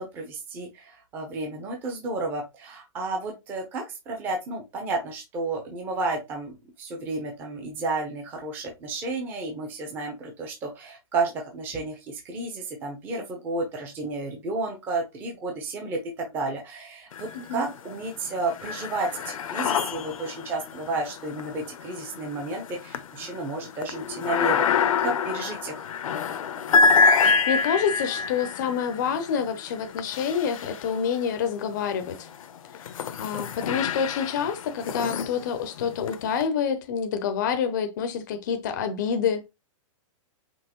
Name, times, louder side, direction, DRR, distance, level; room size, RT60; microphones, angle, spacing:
voice 1, 0.0-25.8, right 3 dB, 10° right, 0.7 m, -32 dB
sound 1, 17.1-17.8 18.1-31.3 32.0-36.4, left 5 dB, 80° left, 0.7 m, -27 dB
voice 2, 17.3-17.7 27.0-32.3 32.9-39.6, left 7 dB, 35° left, 0.6 m, -28 dB
5.4 x 3.1 x 2.9 m
hypercardioid pair, 180°, 17 cm